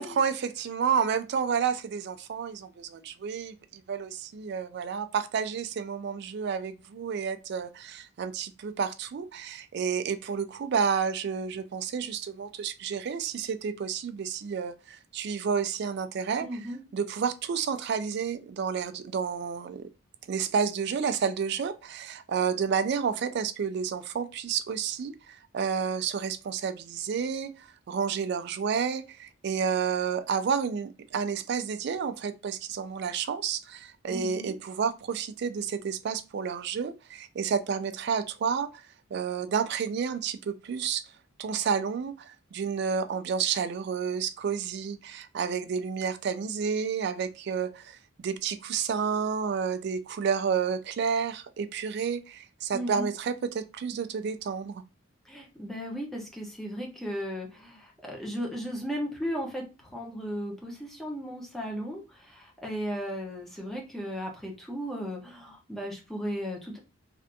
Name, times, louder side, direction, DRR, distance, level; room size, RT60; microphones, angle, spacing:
voice 1, 0.0-16.5 16.9-19.9 20.3-41.0 41.4-54.8, right 6 dB, 55° right, 0.3 m, -30 dB
voice 2, 16.4-16.8 34.1-34.6 52.7-53.1 55.2-66.8, equal, ahead, 0.7 m, -36 dB
3.3 x 2.5 x 2.6 m
head